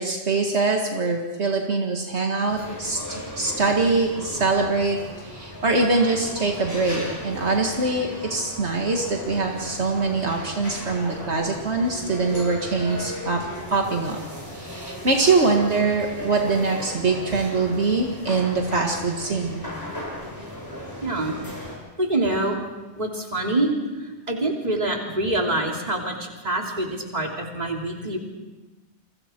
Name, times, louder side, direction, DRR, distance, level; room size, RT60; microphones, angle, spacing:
voice 1, 0.0-13.4 13.7-14.2 14.5-19.7, right 3 dB, 70° right, 1 dB, 2.2 m, -23 dB
sound 1, 2.5-21.8, left 1 dB, 20° left, 7.1 m, -36 dB
voice 2, 21.0-22.6 23.0-28.2, right 2 dB, 35° right, 0 dB, 3.4 m, -26 dB
29.0 x 23.5 x 4.6 m, 1.1 s
omnidirectional pair, 1.2 m